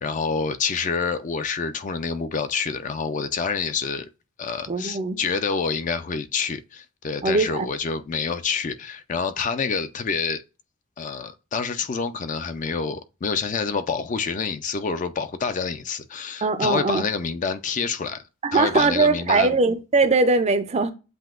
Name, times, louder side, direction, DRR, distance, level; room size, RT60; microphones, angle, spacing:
voice 1, 0.0-4.1 4.4-10.4 11.0-18.2 18.5-19.5, left 5 dB, 35° left, 0.4 m, -27 dB
voice 2, 4.7-5.2 7.2-7.7 16.4-17.0 18.4-20.9, right 3 dB, 30° right, 0.4 m, -21 dB
7.8 x 2.7 x 2.4 m
head